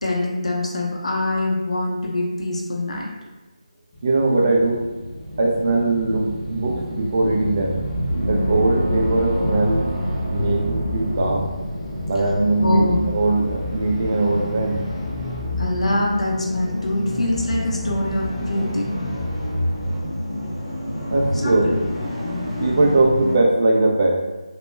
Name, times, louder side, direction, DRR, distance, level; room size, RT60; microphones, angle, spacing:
voice 1, 0.0-3.1 12.3-12.4 12.6-13.0 15.6-19.0 21.3-21.8, left 2 dB, 65° left, -1 dB, 0.6 m, -24 dB
sound 1, 3.9-23.4, left 1 dB, 20° left, 0.7 m, -28 dB
voice 2, 4.0-4.8 5.4-7.8 8.3-9.9 10.3-11.5 12.1-14.8 21.1-21.7 22.6-24.2, right 2 dB, 35° right, -1 dB, 0.3 m, -20 dB
Gong, 8.1-13.3, equal, 80° right, 0.6 m, -28 dB
2.2 x 2.0 x 3.0 m, 1.1 s
figure-of-eight pair, 165°, 4 cm